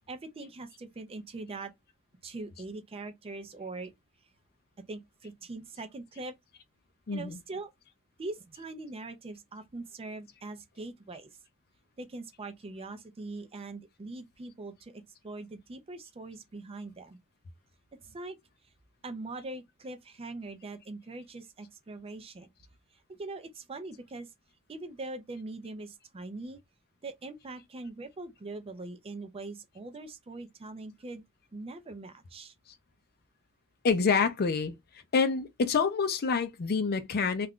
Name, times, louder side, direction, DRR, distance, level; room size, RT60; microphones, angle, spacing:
voice 1, 0.1-1.7 2.2-3.9 4.9-6.3 7.1-7.7 8.2-11.4 12.0-17.2 17.9-18.4 19.0-22.5 22.9-24.3 24.7-26.6 27.0-31.2 31.5-32.5, right 2 dB, 25° right, 0.4 m, -42 dB
voice 2, 7.1-7.4 33.8-34.7 35.1-37.5, left 5 dB, 45° left, 0.5 m, -27 dB
2.4 x 2.2 x 3.5 m
head